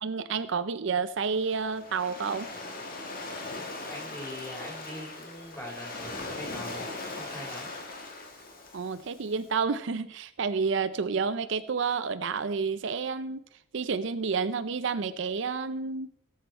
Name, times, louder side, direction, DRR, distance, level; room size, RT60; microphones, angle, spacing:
voice 1, 0.0-2.5 8.7-13.4 13.7-16.1, right 5 dB, 60° right, 12 dB, 0.5 m, -30 dB
Waves surf, 1.2-9.4, left 2 dB, 45° left, 1.7 m, -40 dB
voice 2, 3.8-7.7, left 1 dB, 15° left, -2 dB, 3.5 m, -42 dB
17.5 x 7.3 x 4.4 m, 0.71 s
head